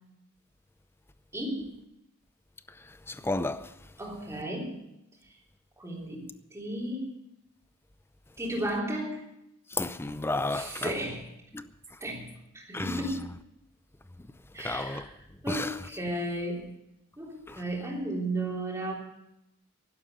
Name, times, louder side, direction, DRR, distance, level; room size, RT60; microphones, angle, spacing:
voice 1, 1.3-1.7 4.0-4.8 5.3-5.4 5.8-7.1 8.4-9.2 10.5-11.3 12.0-13.3 14.5-15.1 15.4-16.8 17.2-18.9, right 1 dB, 15° right, 3.4 m, -34 dB
voice 2, 3.1-3.7 9.7-10.9 11.5-11.7 12.7-13.0 14.6-15.1 15.5-15.7 17.5-17.6, left 2 dB, 10° left, 0.6 m, -32 dB
11.5 x 11.5 x 8.0 m
head